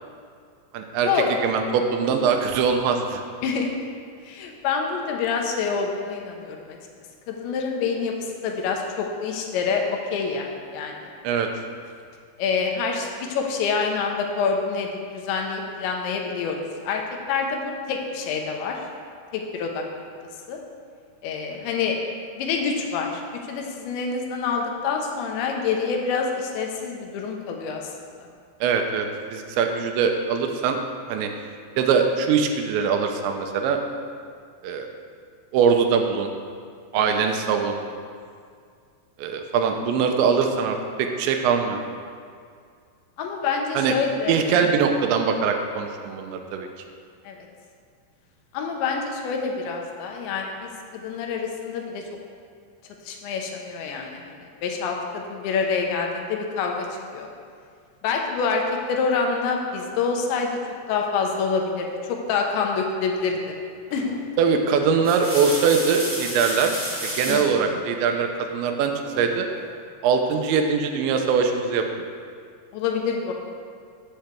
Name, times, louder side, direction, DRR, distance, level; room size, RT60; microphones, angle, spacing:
voice 1, 0.7-3.2 11.2-11.5 28.6-30.8 31.1-31.3 31.8-33.8 34.6-34.9 35.5-36.3 36.9-37.8 39.2-41.8 43.7-44.0 44.3-46.7 64.4-66.7 67.0-69.5 70.0-71.9, right 6 dB, 90° right, 4 dB, 3.0 m, -22 dB
voice 2, 4.2-6.8 7.3-8.1 8.4-9.8 10.1-10.5 10.7-10.9 12.4-14.9 15.1-16.6 16.8-17.0 17.3-18.8 19.3-19.8 20.5-20.6 21.2-22.0 22.4-23.1 23.5-27.8 36.9-37.1 43.2-44.7 47.3-47.4 48.5-52.0 53.1-54.3 54.6-56.9 57.1-57.3 58.0-58.6 58.9-60.5 60.9-63.6 63.9-64.2 67.3-67.7 72.7-73.3, left 5 dB, 90° left, 1 dB, 3.2 m, -26 dB
sound 1, 63.9-64.2 64.8-67.5 69.0-69.7, equal, 20° right, 0.3 m, -32 dB
14.5 x 7.9 x 3.4 m, 2.2 s
omnidirectional pair, 5.2 m